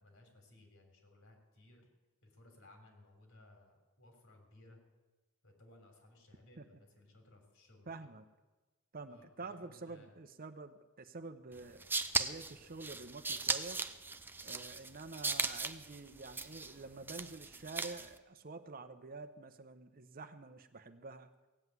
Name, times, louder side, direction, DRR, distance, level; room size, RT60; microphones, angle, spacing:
voice 1, 0.0-1.9 2.2-4.8 5.4-7.9 9.1-10.2, left 1 dB, 60° left, 4 dB, 3.5 m, -61 dB
voice 2, 7.9-8.2 8.9-13.8 14.4-21.3, right 3 dB, 40° right, 10 dB, 0.8 m, -48 dB
sound 1, 11.6-18.2, right 3 dB, 10° right, 0.5 m, -38 dB
16.5 x 8.0 x 9.4 m, 1.2 s
head